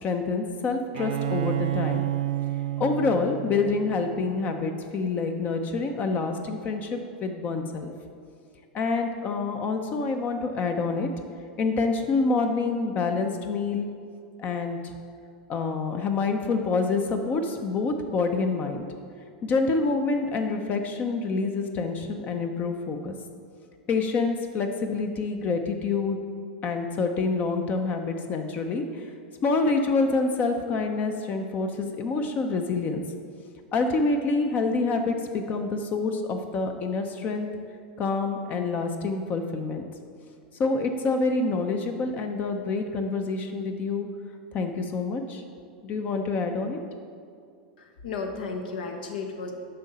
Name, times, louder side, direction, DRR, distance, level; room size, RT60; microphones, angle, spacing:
voice 1, 0.0-2.0 2.8-7.9 8.7-11.1 11.6-13.9 14.4-14.9 15.5-18.8 19.4-23.1 23.9-26.2 26.6-29.1 29.4-33.0 33.7-37.5 38.0-39.9 40.6-44.1 44.5-45.4 45.8-46.8, left 3 dB, 35° left, 5 dB, 0.6 m, -27 dB
Bowed string instrument, 0.9-4.6, right 14 dB, 75° right, 0.5 m, -30 dB
voice 2, 47.8-49.5, left 4 dB, 80° left, 4 dB, 0.9 m, -34 dB
7.6 x 5.4 x 4.1 m, 2.2 s
hypercardioid pair, 110°, 5 cm